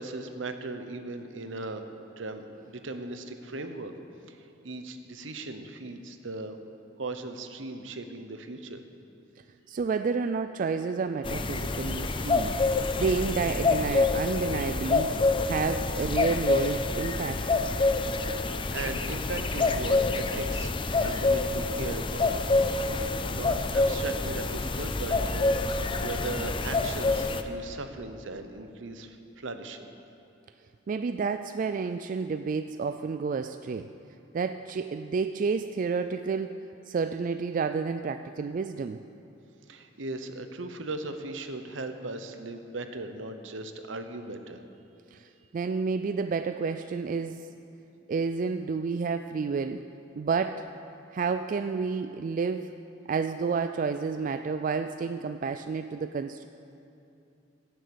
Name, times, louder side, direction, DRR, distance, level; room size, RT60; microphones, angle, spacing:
voice 1, 0.0-3.9 4.3-6.6 7.0-8.8 18.3-22.3 22.7-22.9 23.3-29.8 39.7-44.6, right 2 dB, 75° right, 8 dB, 0.9 m, -38 dB
voice 2, 9.7-12.6 12.9-15.2 15.5-17.5 30.9-33.9 34.3-36.6 36.9-39.1 45.1-47.5 48.1-49.9 50.2-50.7 51.1-52.7 53.1-56.5, right 5 dB, 45° right, 9 dB, 0.3 m, -30 dB
sound 1, 11.2-27.4, left 3 dB, 25° left, 0.5 m, -27 dB
17.0 x 7.6 x 7.0 m, 2.7 s
head